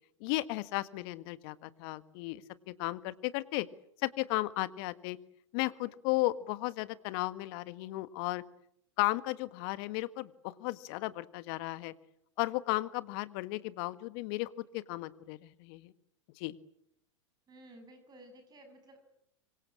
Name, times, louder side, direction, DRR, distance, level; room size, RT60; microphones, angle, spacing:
voice 1, 0.2-3.7 4.0-5.2 5.5-8.4 9.0-11.9 12.4-15.9 16.4-16.6, left 19 dB, 50° left, 14 dB, 1.6 m, -35 dB
voice 2, 17.5-19.0, right 1 dB, 25° right, 7 dB, 7.0 m, -54 dB
26.0 x 24.0 x 8.7 m, 0.76 s
figure-of-eight pair, 95°, 16 cm